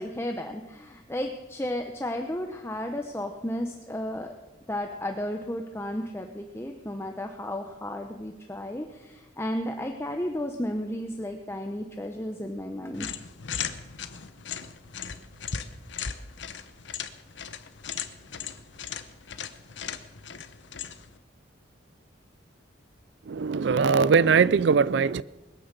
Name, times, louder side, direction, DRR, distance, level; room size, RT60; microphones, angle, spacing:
voice 1, 0.0-4.3 4.7-13.1, left 1 dB, 15° left, 0.8 m, -33 dB
sound 1, 12.9-21.2, left 7 dB, 70° left, 0.9 m, -37 dB
voice 2, 23.3-25.2, right 5 dB, 65° right, 0.4 m, -21 dB
21.0 x 9.3 x 6.8 m
head